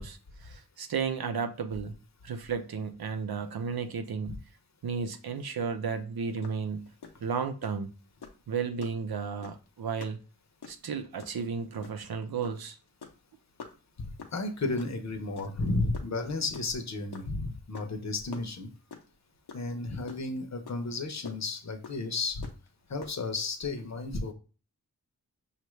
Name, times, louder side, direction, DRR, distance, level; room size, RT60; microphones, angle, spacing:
voice 1, 0.0-1.9 2.2-4.4 4.8-6.9 7.2-7.9 8.5-10.2 10.7-12.8, right 5 dB, 70° right, 0.6 m, -33 dB
sound 1, 6.4-6.6 6.9-7.1 7.6-7.8 8.2-8.4 8.8-9.0 9.4-9.7 10.0-10.2 10.5-10.9 11.2-11.4 11.8-12.1 12.4-12.6 12.9-13.2 13.6-13.7 14.2-14.4 14.8-15.0 15.4-15.7 15.9-17.3 17.7-18.0 18.3-19.1 19.5-19.7 19.9-20.4 20.7-20.8 21.3-21.4 21.8-21.9 22.4-22.7 23.0-23.2, left 5 dB, 85° left, 0.8 m, -45 dB
voice 2, 14.0-18.7 19.5-22.5 22.9-24.3, left 3 dB, 45° left, 0.8 m, -33 dB
5.5 x 2.4 x 3.1 m
wide cardioid pair, 65°, 38 cm